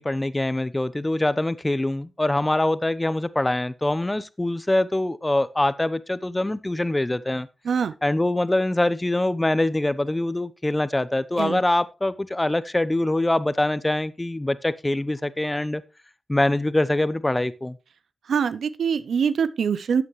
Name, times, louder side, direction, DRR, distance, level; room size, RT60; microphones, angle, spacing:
voice 1, 0.0-7.5 8.0-15.8 16.3-17.8, left 1 dB, 20° left, 0.9 m, -24 dB
voice 2, 18.3-20.0, right 6 dB, 85° right, 0.6 m, -24 dB
12.5 x 8.4 x 3.1 m
cardioid pair, 50°, 0 cm